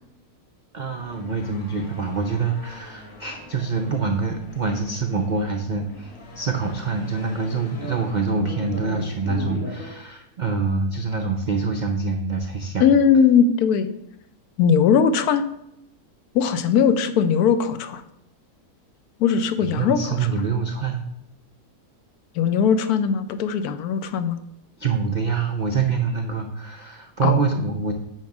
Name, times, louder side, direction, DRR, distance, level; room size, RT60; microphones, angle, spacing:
voice 1, 0.7-12.8 19.6-21.0 24.8-27.9, right 4 dB, 80° right, 4 dB, 0.4 m, -25 dB
sound 1, 0.9-9.9, left 2 dB, 45° left, 1.6 m, -38 dB
voice 2, 12.8-13.9 14.6-15.4 16.3-18.0 19.2-20.2 22.4-24.4 27.2-27.4, left 7 dB, 80° left, 10 dB, 1.1 m, -19 dB
8.8 x 3.0 x 5.9 m, 0.81 s
omnidirectional pair, 1.6 m